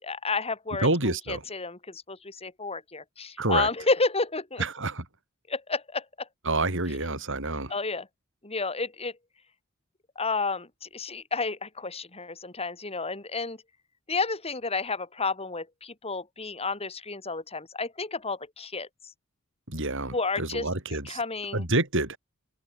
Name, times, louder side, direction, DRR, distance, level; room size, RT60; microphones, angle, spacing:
voice 1, 0.0-4.6 5.5-6.3 7.7-8.1 8.4-9.1 10.2-13.6 14.1-18.9 20.1-20.7 21.0-21.6, left 3 dB, 30° left, 4.3 m, -31 dB
voice 2, 0.8-1.4 3.4-3.7 4.6-5.0 6.5-7.7 19.7-21.2 21.5-22.2, right 2 dB, 60° right, 7.9 m, -28 dB
head